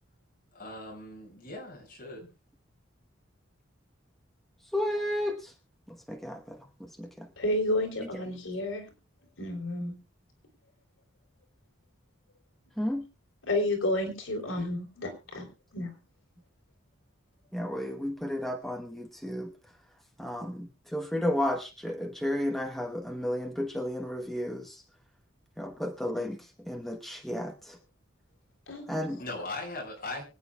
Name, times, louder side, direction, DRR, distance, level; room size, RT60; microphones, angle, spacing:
voice 1, 0.5-2.3 14.6-14.7 29.2-30.2, left 2 dB, 45° left, -1 dB, 6.4 m, -39 dB
voice 2, 4.7-5.5 6.1-7.3 12.8-13.0 17.5-19.5 20.2-24.8 25.6-26.4 26.7-27.7 28.9-29.2, left 1 dB, ahead, 3 dB, 1.0 m, -32 dB
voice 3, 7.4-8.9 9.4-10.0 13.4-15.5 15.7-16.0 28.7-28.8, left 1 dB, 80° left, 3 dB, 3.7 m, -30 dB
24.5 x 9.2 x 2.3 m, 0.29 s
head